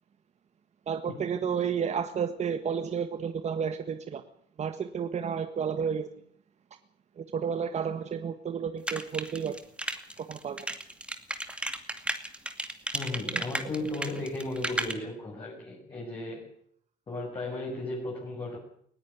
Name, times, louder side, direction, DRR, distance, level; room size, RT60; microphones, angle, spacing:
voice 1, 0.9-4.2 4.6-6.1 7.2-9.5 10.3-10.7 13.3-13.4, right 7 dB, 40° right, 9 dB, 1.6 m, -31 dB
sound 1, 8.9-14.9, right 1 dB, 5° right, 2.4 m, -33 dB
voice 2, 12.9-16.5 17.1-18.6, left 2 dB, 30° left, -4 dB, 7.6 m, -35 dB
20.0 x 16.5 x 9.7 m, 0.66 s
cardioid pair, 110°, 17 cm